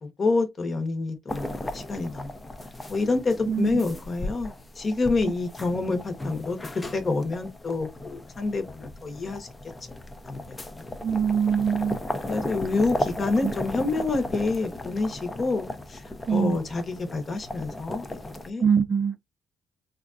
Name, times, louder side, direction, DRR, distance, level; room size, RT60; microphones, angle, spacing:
voice 1, 0.0-2.3 2.9-9.5 10.3-10.8 12.3-16.0 16.3-18.0 18.5-18.6, left 3 dB, 40° left, 1.0 m, -28 dB
sound 1, 1.3-18.5, left 1 dB, 20° left, 0.6 m, -36 dB
voice 2, 3.5-3.9 11.0-12.0 13.4-13.5 16.3-16.6 18.6-19.2, right 7 dB, 35° right, 0.4 m, -23 dB
3.6 x 2.4 x 2.5 m
cardioid pair, 90°, 0 cm